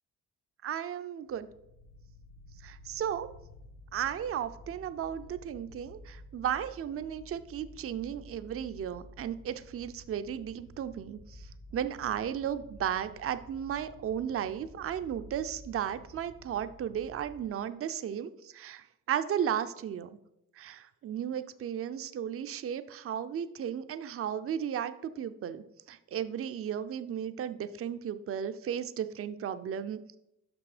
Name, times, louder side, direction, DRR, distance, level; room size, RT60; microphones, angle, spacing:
voice 1, 0.6-1.5 2.6-3.3 3.9-11.5 11.7-20.1 20.6-30.2, right 9 dB, 40° right, 11 dB, 0.5 m, -35 dB
sound 1, 1.3-17.4, left 1 dB, 90° left, 1.7 m, -52 dB
6.1 x 5.8 x 4.9 m, 0.86 s
cardioid pair, 95°, 34 cm